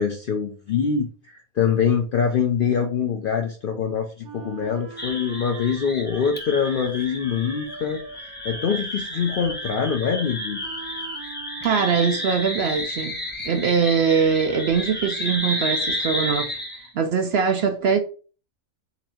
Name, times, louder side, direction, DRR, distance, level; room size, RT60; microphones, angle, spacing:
voice 1, 0.0-10.6, left 7 dB, 75° left, 0.5 m, -24 dB
Wind instrument woodwind instrument, 4.2-12.4, right 5 dB, 85° right, 1.4 m, -43 dB
sound 1, 5.0-16.9, equal, 10° left, 0.7 m, -31 dB
voice 2, 11.6-13.2 13.4-18.0, right 6 dB, 65° right, 0.6 m, -22 dB
4.0 x 2.6 x 4.2 m
omnidirectional pair, 1.5 m